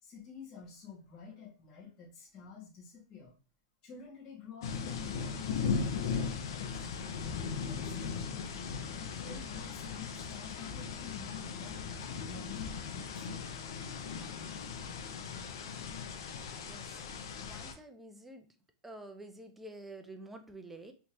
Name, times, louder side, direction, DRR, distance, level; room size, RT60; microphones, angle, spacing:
voice 1, 0.0-3.3 3.8-6.9 7.6-8.5 8.9-11.8 12.2-13.7, left 7 dB, 30° left, -7 dB, 2.2 m, -49 dB
sound 1, 4.6-17.7, left 5 dB, 70° left, 0.8 m, -38 dB
voice 2, 16.5-17.1 17.4-18.5 18.8-20.9, right 1 dB, 5° right, 6 dB, 0.6 m, -49 dB
4.2 x 3.5 x 3.0 m, 0.37 s
supercardioid pair, 140°, 2 cm